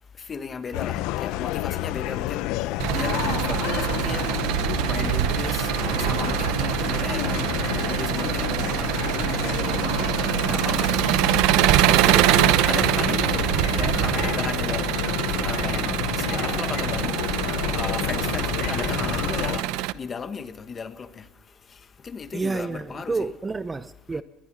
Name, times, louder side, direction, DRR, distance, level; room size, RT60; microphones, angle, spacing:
voice 1, 0.1-11.0 11.5-23.3 24.1-24.2, left 5 dB, 30° left, 1.6 m, -36 dB
sound 1, 0.7-19.6, left 15 dB, 80° left, 0.7 m, -29 dB
Engine, 2.8-19.9, right 16 dB, 80° right, 0.7 m, -24 dB
voice 2, 12.0-12.4 22.3-24.2, right 3 dB, 20° right, 0.6 m, -30 dB
21.0 x 20.0 x 6.4 m
cardioid pair, 115°, 0 cm